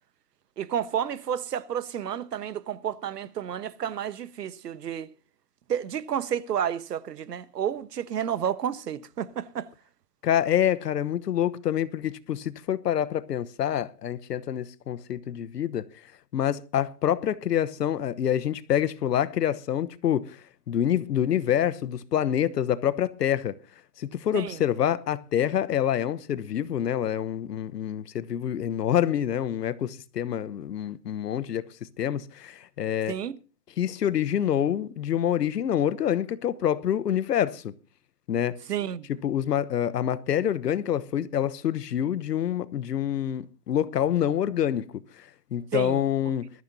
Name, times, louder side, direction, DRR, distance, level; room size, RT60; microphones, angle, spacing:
voice 1, 0.6-5.1 5.7-9.7 24.3-24.6 33.1-33.4 38.7-39.1 45.7-46.0, right 9 dB, 80° right, 1.3 m, -31 dB
voice 2, 10.2-15.9 16.3-20.4 20.7-23.6 24.0-33.2 33.8-37.7 38.3-38.6 39.2-45.0 45.5-46.5, left 10 dB, 80° left, 1.1 m, -26 dB
20.5 x 14.0 x 2.7 m
hypercardioid pair, 165°, 47 cm